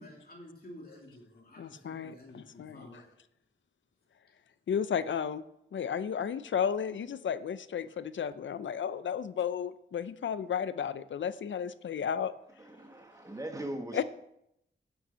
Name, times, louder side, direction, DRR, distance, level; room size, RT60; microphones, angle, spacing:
voice 1, 0.0-3.1, left 1 dB, 50° left, -1 dB, 2.6 m, -50 dB
voice 2, 1.6-2.9 4.7-5.4 5.7-12.3 13.9-14.0, left 8 dB, 80° left, 14 dB, 0.5 m, -33 dB
voice 3, 12.6-14.0, right 1 dB, 15° right, 4 dB, 1.4 m, -40 dB
8.9 x 6.9 x 6.9 m, 0.80 s
wide cardioid pair, 120°, 19 cm